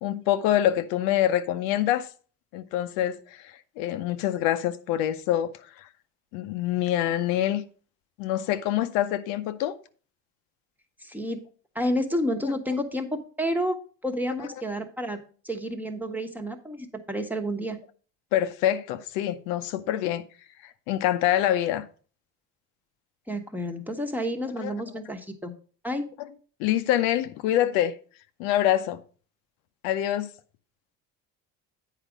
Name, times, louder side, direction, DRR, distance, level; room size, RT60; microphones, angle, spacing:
voice 1, 0.0-2.1 2.5-5.5 5.8-5.9 6.3-7.6 8.2-9.8 14.4-14.5 18.3-20.2 20.6-21.9 24.6-24.7 26.6-27.9 28.4-29.0 29.8-30.3, left 12 dB, 85° left, 0.7 m, -25 dB
voice 2, 11.0-11.5 11.7-13.8 14.0-17.8 23.3-25.5 25.8-26.1, equal, 5° right, 1.1 m, -30 dB
8.3 x 4.9 x 5.1 m
supercardioid pair, 95°, 35 cm